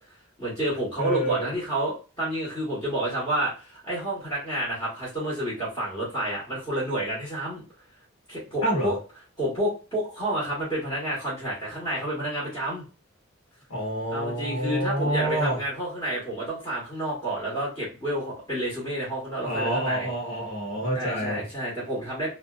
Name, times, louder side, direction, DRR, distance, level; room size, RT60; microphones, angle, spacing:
voice 1, 0.4-7.6 8.3-9.0 9.4-12.8 14.1-20.1 20.9-22.3, right 1 dB, 20° left, -8 dB, 1.1 m, -29 dB
voice 2, 1.0-1.5 8.6-8.9 13.7-15.6 19.4-21.4, right 1 dB, 70° left, -6 dB, 1.0 m, -27 dB
2.5 x 2.1 x 2.3 m, 0.33 s
head